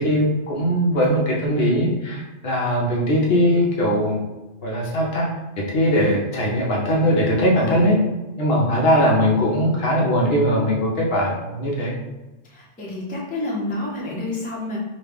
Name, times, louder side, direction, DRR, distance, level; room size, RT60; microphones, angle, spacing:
voice 1, 0.0-4.2 4.6-5.3 5.6-8.0 8.4-11.9, equal, 60° left, -2 dB, 0.8 m, -20 dB
voice 2, 7.6-7.9 12.4-14.8, left 2 dB, 10° left, -4 dB, 0.4 m, -29 dB
3.1 x 2.2 x 3.4 m, 1.1 s
omnidirectional pair, 1.3 m